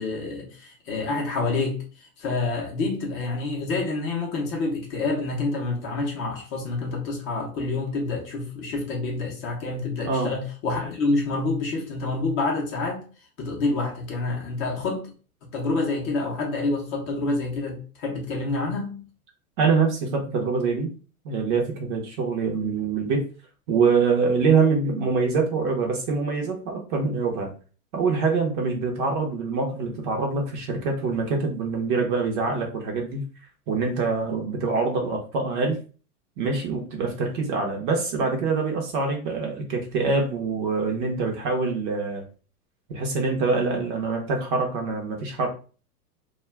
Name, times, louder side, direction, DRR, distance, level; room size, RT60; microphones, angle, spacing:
voice 1, 0.0-13.1 13.4-15.1 15.4-19.0, left 3 dB, 30° left, 0.6 m, -28 dB
voice 2, 10.0-10.4 19.6-20.9 21.2-23.3 23.7-27.5 27.9-33.3 33.7-35.8 36.4-42.2 42.9-45.5, right 4 dB, 35° right, 0.6 m, -24 dB
2.3 x 2.1 x 3.2 m
hypercardioid pair, 125°, 46 cm